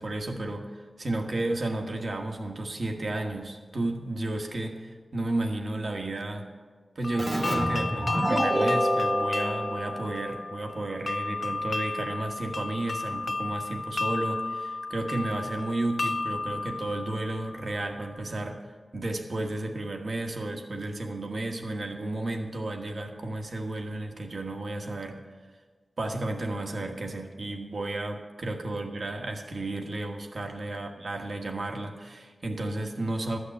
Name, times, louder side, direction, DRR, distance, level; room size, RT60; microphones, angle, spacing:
voice 1, 0.0-6.5 6.9-18.6 18.9-25.2 26.0-33.4, right 2 dB, 60° right, 3 dB, 1.4 m, -33 dB
sound 1, 7.0-17.9, left 3 dB, 50° left, 0.4 m, -32 dB
Keyboard (musical), 7.2-10.6, right 1 dB, 35° right, 1.4 m, -28 dB
13.0 x 6.6 x 8.4 m, 1.5 s
wide cardioid pair, 100°, 0 cm